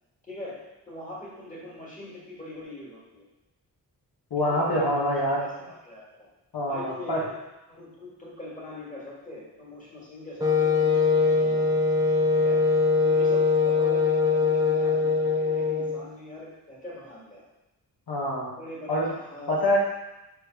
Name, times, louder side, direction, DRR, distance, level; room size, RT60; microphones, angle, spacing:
voice 1, 0.9-3.2 4.4-5.1 5.4-6.3 6.7-7.3 7.7-11.8 12.3-12.6 13.0-17.4 18.6-19.6, left 1 dB, 20° left, -5 dB, 1.8 m, -42 dB
voice 2, 4.3-5.4 6.5-7.2 18.1-18.5 18.9-19.1 19.5-19.8, left 1 dB, 75° left, -5 dB, 1.9 m, -25 dB
Wind instrument woodwind instrument, 10.4-16.1, left 4 dB, 10° right, 0.5 m, -22 dB
5.0 x 4.6 x 5.2 m, 0.97 s
wide cardioid pair, 135°, 38 cm